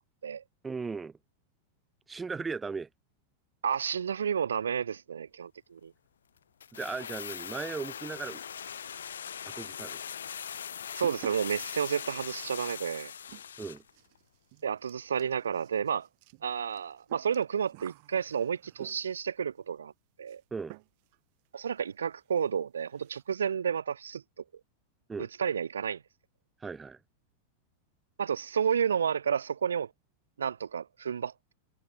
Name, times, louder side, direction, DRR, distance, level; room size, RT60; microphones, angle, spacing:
voice 1, 0.6-1.2 2.1-2.9 6.7-8.4 9.5-10.0 13.6-13.8 20.5-20.8 25.1-25.3 26.6-27.0, right 4 dB, 15° right, 2.2 m, -37 dB
voice 2, 3.6-5.9 10.9-13.1 14.6-16.1 16.4-19.9 20.2-20.4 21.5-24.2 25.4-26.0 28.2-29.9 30.4-31.5, right 7 dB, 70° right, 0.5 m, -31 dB
sound 1, 6.6-13.9 14.2-14.3, left 8 dB, 65° left, 2.8 m, -41 dB
sound 2, 10.0-10.1 10.4-19.3 20.3-20.4 20.7-21.2 21.5-21.6 21.9-22.0 22.3-22.5 22.8-23.3, right 28 dB, 45° right, 1.4 m, -51 dB
figure-of-eight pair, 90°, 0 cm